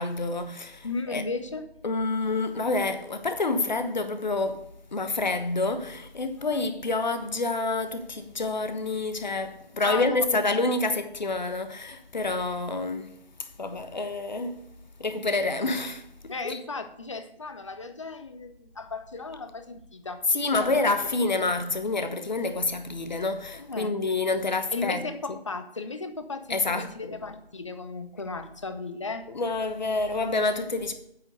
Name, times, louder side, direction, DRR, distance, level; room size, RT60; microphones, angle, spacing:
voice 1, 0.0-1.2 1.8-13.1 13.4-14.7 15.0-16.6 20.3-25.4 26.5-27.0 29.3-30.9, left 3 dB, 45° left, 1.2 m, -28 dB
voice 2, 0.8-1.6 9.8-10.7 16.3-20.8 23.5-23.9 24.7-29.3, left 3 dB, 30° left, 0.8 m, -35 dB
8.2 x 6.8 x 6.5 m
figure-of-eight pair, 160°, 30 cm